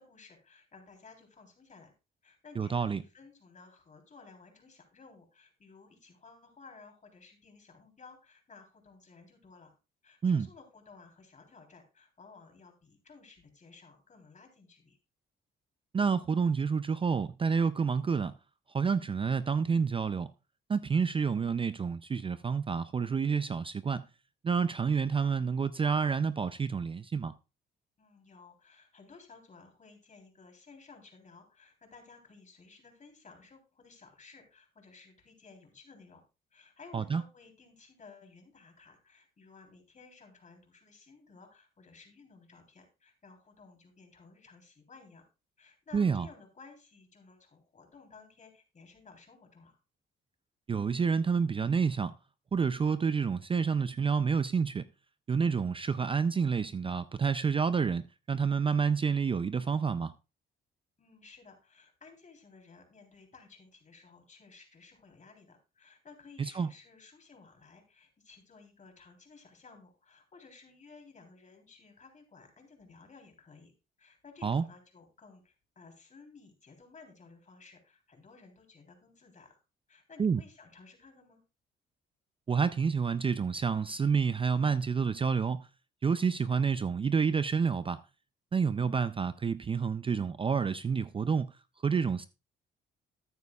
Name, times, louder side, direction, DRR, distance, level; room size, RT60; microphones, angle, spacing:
voice 1, 0.0-1.9 2.2-9.7 10.0-15.0 28.0-36.2 36.5-45.3 45.6-49.8 61.0-73.7 74.0-79.6 79.9-81.4, left 4 dB, 40° left, 3.5 m, -56 dB
voice 2, 2.6-3.0 10.2-10.5 15.9-18.3 18.7-20.3 20.7-24.0 24.4-27.3 36.9-37.2 45.9-46.3 50.7-52.1 52.5-54.9 55.3-60.1 66.4-66.7 74.4-74.6 80.2-80.4 82.5-85.6 86.0-88.0 88.5-91.5 91.8-92.3, right 5 dB, 25° right, 0.4 m, -29 dB
13.5 x 9.3 x 2.3 m
cardioid pair, 90°, 20 cm